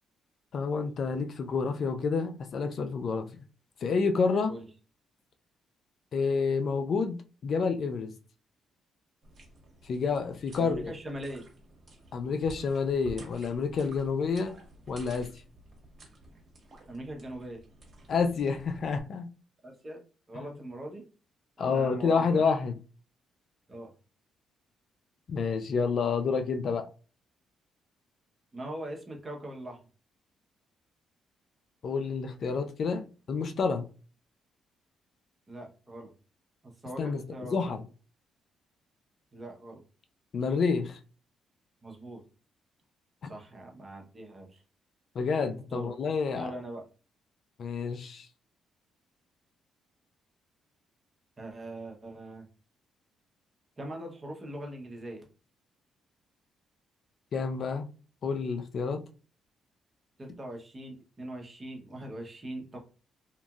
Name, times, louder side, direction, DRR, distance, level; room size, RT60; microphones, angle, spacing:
voice 1, 0.5-3.3 3.8-4.5 6.1-7.2 7.4-8.1 9.8-10.9 12.1-14.6 14.9-15.3 18.1-19.3 21.6-22.7 25.3-26.9 31.8-33.9 37.0-37.2 37.5-37.8 40.3-41.0 43.2-43.3 45.2-46.5 47.6-48.3 57.3-57.9 58.2-59.0, left 5 dB, 55° left, 0.3 m, -29 dB
sound 1, 9.2-19.0, right 1 dB, 50° right, 1.2 m, -52 dB
voice 2, 10.5-11.5 16.9-17.6 19.6-20.0 20.3-21.0 21.6-22.5 23.7-23.9 28.5-29.8 35.5-36.1 36.6-37.7 39.3-39.8 41.8-42.2 43.2-44.6 45.7-45.9 46.3-46.8 51.4-52.4 53.8-55.2 60.2-62.8, right 1 dB, 25° right, 0.9 m, -41 dB
2.8 x 2.5 x 2.4 m
cardioid pair, 90°, 0 cm